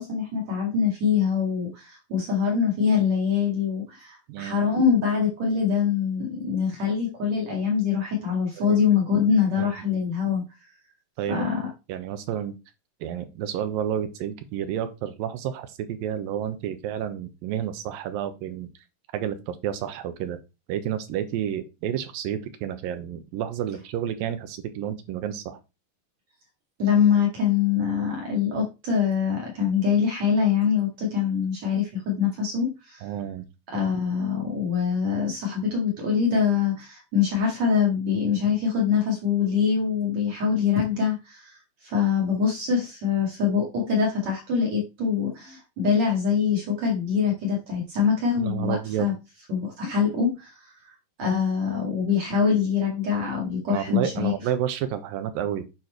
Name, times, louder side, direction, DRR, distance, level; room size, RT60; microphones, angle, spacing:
voice 1, 0.0-10.4 11.3-11.6 26.8-33.1 33.7-49.1 49.5-50.9 51.2-54.3, left 6 dB, 50° right, -2 dB, 3.3 m, -24 dB
voice 2, 4.3-4.7 8.6-8.8 9.6-10.0 11.2-11.4 11.9-12.5 13.0-18.7 19.1-20.4 20.7-25.6 33.0-33.4 48.4-49.1 53.7-55.6, right 10 dB, 80° right, 9 dB, 2.7 m, -30 dB
9.2 x 4.3 x 4.6 m, 0.27 s
omnidirectional pair, 4.1 m